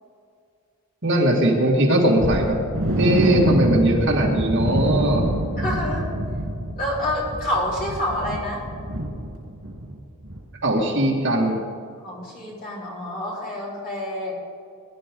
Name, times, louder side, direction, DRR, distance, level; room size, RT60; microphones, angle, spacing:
voice 1, 1.0-2.6 3.0-5.3 10.6-11.6, right 1 dB, 55° right, -1 dB, 2.2 m, -19 dB
sound 1, 2.2-10.0 10.2-10.4 10.8-10.9, right 1 dB, 85° right, 3.5 m, -26 dB
voice 2, 5.6-6.1 6.8-8.6 12.0-14.3, left 1 dB, 40° left, -5 dB, 4.2 m, -28 dB
21.0 x 11.0 x 3.8 m, 2.4 s
head